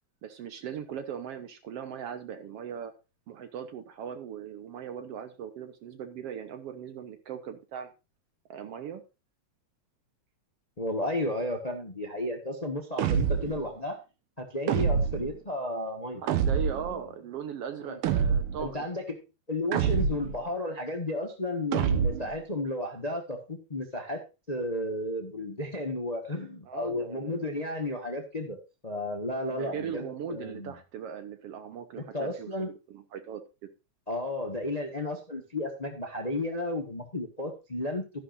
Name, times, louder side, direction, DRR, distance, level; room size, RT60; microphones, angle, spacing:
voice 1, 0.2-2.9 3.3-7.9 8.5-9.0 16.2-18.9 26.7-27.4 29.5-33.4, right 8 dB, 65° right, 9 dB, 1.6 m, -39 dB
voice 2, 10.8-14.0 14.4-16.2 16.9-17.0 17.8-18.0 18.6-19.2 19.5-24.2 24.5-30.7 32.1-32.7 34.1-38.0, left 1 dB, 65° left, 4 dB, 0.4 m, -33 dB
sound 1, 13.0-13.6 14.7-15.4 16.3-16.9 18.0-18.7 19.7-20.4 21.7-22.4, right 7 dB, 90° right, 1.2 m, -26 dB
12.5 x 11.0 x 2.6 m, 0.28 s
omnidirectional pair, 3.6 m